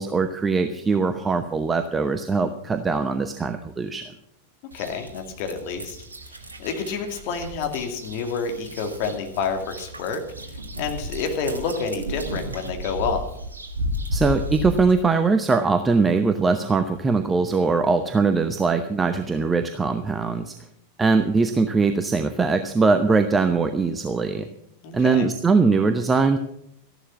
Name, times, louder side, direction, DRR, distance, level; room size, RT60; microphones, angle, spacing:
voice 1, 0.0-4.0 14.1-20.6 21.0-24.5 24.9-26.4, right 4 dB, 15° right, 9 dB, 0.8 m, -21 dB
voice 2, 4.7-6.0 6.6-10.2 10.8-13.3 24.8-25.3, left 5 dB, 45° left, 4 dB, 2.4 m, -28 dB
sound 1, 4.7-14.9, equal, 75° right, 1.5 m, -34 dB
14.0 x 11.0 x 6.1 m, 0.77 s
figure-of-eight pair, 90°, 0 cm